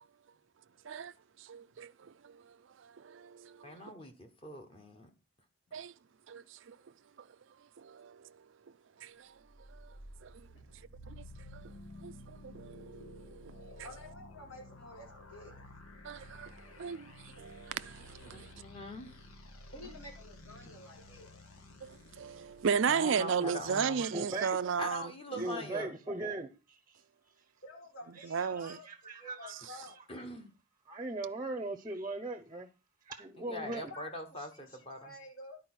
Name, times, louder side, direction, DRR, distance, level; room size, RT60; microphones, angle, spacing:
voice 1, 1.4-2.6 2.8-3.9 5.7-5.9 6.3-6.8 7.8-8.4 9.0-9.3 9.7-9.9 10.2-10.5 11.1-11.2 11.5-11.7 12.0-12.1 12.4-13.9 16.0-18.5 21.8-25.0 25.4-25.5 28.3-28.8, right 6 dB, 60° right, 0.4 m, -36 dB
voice 2, 3.6-5.1 18.3-19.2 19.8-19.9 20.6-20.8 22.9-24.0 24.8-25.9 30.1-30.5 33.4-35.1, left 1 dB, 25° left, 1.3 m, -42 dB
sound 1, 9.4-22.7, left 1 dB, 85° left, 1.6 m, -52 dB
voice 3, 13.8-15.7 19.7-21.3 27.6-28.9 29.2-30.0 33.9-34.1 34.4-35.6, left 1 dB, 70° left, 4.1 m, -50 dB
voice 4, 24.0-24.6 25.4-27.0 28.4-29.6 30.9-32.7 33.1-33.9, right 2 dB, 20° right, 0.7 m, -39 dB
11.0 x 4.7 x 6.2 m
head